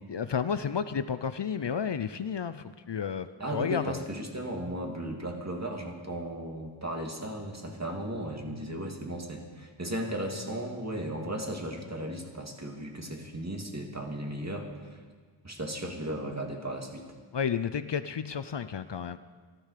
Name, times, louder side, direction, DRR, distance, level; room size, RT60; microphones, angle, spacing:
voice 1, 0.1-4.0 17.3-19.2, left 7 dB, 55° left, 12 dB, 0.6 m, -31 dB
voice 2, 3.4-14.7 15.4-17.1, right 1 dB, 30° right, 1 dB, 2.5 m, -36 dB
14.0 x 14.0 x 6.7 m, 1.5 s
wide cardioid pair, 65°, 50 cm